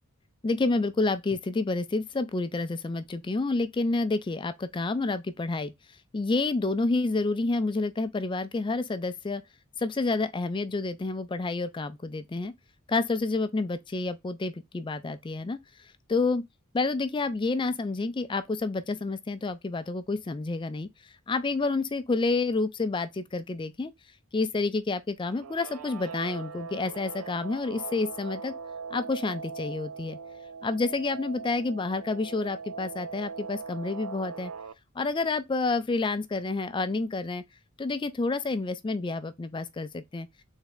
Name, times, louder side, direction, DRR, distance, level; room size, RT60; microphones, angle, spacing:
voice 1, 0.4-5.7 6.1-9.4 9.8-12.5 12.9-15.6 16.1-16.4 16.7-23.9 24.3-28.5 28.9-30.2 30.6-34.5 35.0-37.4 37.8-40.3, left 3 dB, 20° left, 0.3 m, -29 dB
Guitar, 25.3-34.7, right 5 dB, 85° right, 0.4 m, -40 dB
3.6 x 3.3 x 3.5 m
head